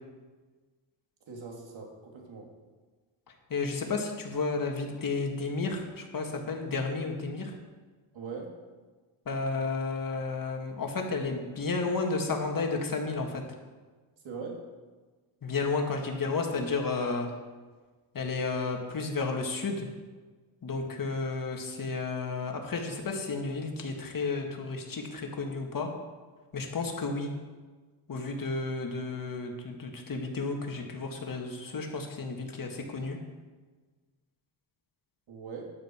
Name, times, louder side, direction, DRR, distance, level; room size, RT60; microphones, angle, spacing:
voice 1, 1.3-2.5 8.1-8.6 14.2-14.6 35.3-35.6, right 5 dB, 65° right, 0 dB, 3.1 m, -41 dB
voice 2, 3.5-7.5 9.3-13.4 15.4-17.3 18.1-19.9 20.6-25.9 26.5-27.3 28.1-33.2, left 3 dB, 40° left, 2 dB, 2.2 m, -32 dB
12.0 x 10.0 x 4.7 m, 1.3 s
cardioid pair, 85°, 49 cm